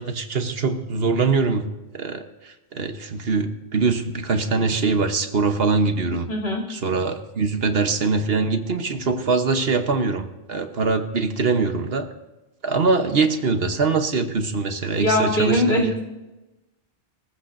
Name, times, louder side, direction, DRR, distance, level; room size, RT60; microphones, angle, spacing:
voice 1, 0.0-1.7 1.9-6.3 6.7-12.1 12.6-16.0, right 4 dB, 70° right, 7 dB, 1.3 m, -23 dB
voice 2, 6.3-6.6 15.0-16.0, left 1 dB, 85° left, 0 dB, 3.4 m, -21 dB
24.5 x 14.5 x 2.6 m, 1.1 s
omnidirectional pair, 1.1 m